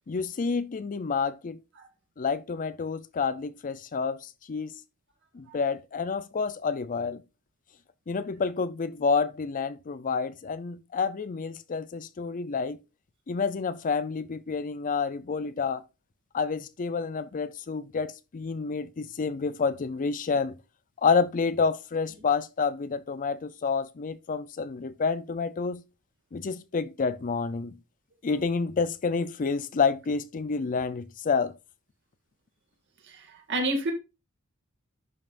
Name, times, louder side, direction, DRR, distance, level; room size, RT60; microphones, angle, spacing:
voice 1, 0.1-1.6 2.2-4.7 5.3-7.2 8.1-12.8 13.3-15.8 16.3-20.6 21.0-25.8 26.3-27.8 28.2-31.5, left 5 dB, 40° left, 0.4 m, -29 dB
voice 2, 33.1-33.9, right 1 dB, 55° right, 2.1 m, -30 dB
11.0 x 5.5 x 2.5 m
head